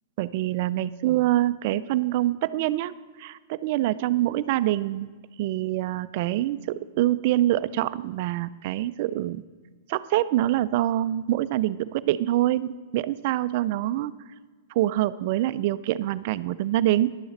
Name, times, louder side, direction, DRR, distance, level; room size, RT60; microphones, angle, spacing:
voice 1, 0.2-2.9 3.2-5.1 5.4-9.4 9.9-14.1 14.7-17.2, right 14 dB, 50° right, 15 dB, 0.3 m, -25 dB
10.5 x 7.0 x 5.1 m, 1.4 s
hypercardioid pair, 135°, 0 cm